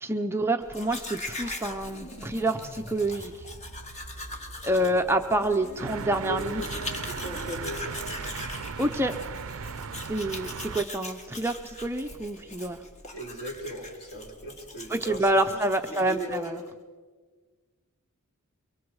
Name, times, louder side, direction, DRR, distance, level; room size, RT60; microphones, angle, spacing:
voice 1, 0.0-3.3 4.6-6.6 8.8-9.1 10.1-12.8 14.9-16.6, right 1 dB, 10° right, 5 dB, 0.7 m, -27 dB
Domestic sounds home sounds, 0.6-16.7, left 2 dB, 30° left, 1.9 m, -41 dB
sound 1, 0.8-10.7, right 1 dB, 85° left, 4.4 m, -47 dB
sound 2, 5.8-10.9, right 5 dB, 60° right, 0.6 m, -37 dB
voice 2, 6.3-8.2 13.1-15.6 15.9-16.6, equal, 50° left, 0 dB, 5.0 m, -38 dB
24.5 x 23.5 x 4.8 m, 1.5 s
head